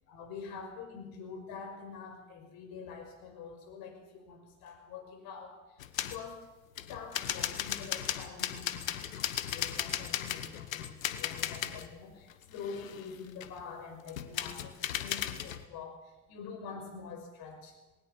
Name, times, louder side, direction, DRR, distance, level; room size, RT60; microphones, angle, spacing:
voice 1, 0.1-5.5 6.1-6.5 6.9-16.0 16.3-17.7, left 5 dB, 65° left, 6 dB, 6.0 m, -45 dB
sound 1, 5.8-6.2 6.8-11.9 12.3-13.6 14.1-15.6, left 11 dB, 85° left, 1.3 m, -36 dB
21.0 x 18.5 x 7.4 m, 1.1 s
hypercardioid pair, 65°, 39 cm